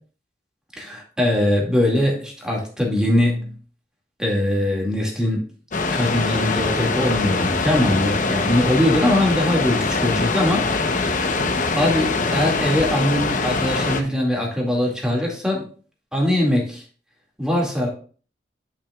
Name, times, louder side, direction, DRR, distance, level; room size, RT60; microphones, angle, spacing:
voice 1, 0.8-3.5 4.2-5.4 5.9-10.6 11.8-15.6 16.1-16.8 17.4-17.9, left 1 dB, 5° right, -2 dB, 2.1 m, -21 dB
sound 1, 5.7-14.0, left 3 dB, 45° left, 0.8 m, -23 dB
10.5 x 5.9 x 2.3 m, 0.40 s
head